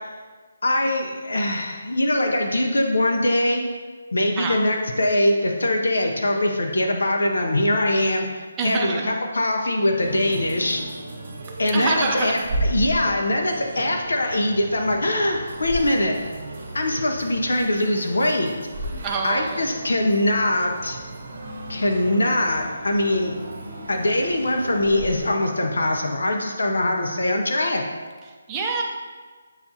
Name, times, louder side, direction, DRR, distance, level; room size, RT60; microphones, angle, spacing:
voice 1, 0.6-3.6 4.1-9.0 9.3-10.8 11.6-12.4 12.7-16.2 16.7-18.5 19.2-21.0 21.7-23.3 23.9-27.8, left 1 dB, 85° left, 2 dB, 0.5 m, -22 dB
voice 2, 8.6-9.1 11.7-12.4 19.0-19.8 28.3-28.8, right 4 dB, 15° right, -1 dB, 0.5 m, -26 dB
sound 1, 10.0-25.3, right 1 dB, 50° right, 0.9 m, -34 dB
6.9 x 2.4 x 2.7 m, 1.5 s
hypercardioid pair, 165°, 0 cm